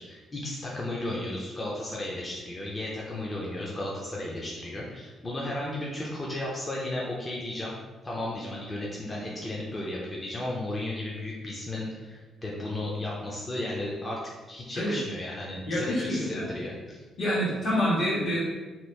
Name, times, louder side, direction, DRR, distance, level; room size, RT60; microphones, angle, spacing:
voice 1, 0.0-7.8 8.0-14.2 14.5-17.0, left 1 dB, 25° left, -4 dB, 0.5 m, -34 dB
voice 2, 15.7-16.5 17.2-18.4, equal, 70° left, -8 dB, 1.4 m, -27 dB
2.9 x 2.3 x 3.3 m, 1.3 s
cardioid pair, 90°, 0 cm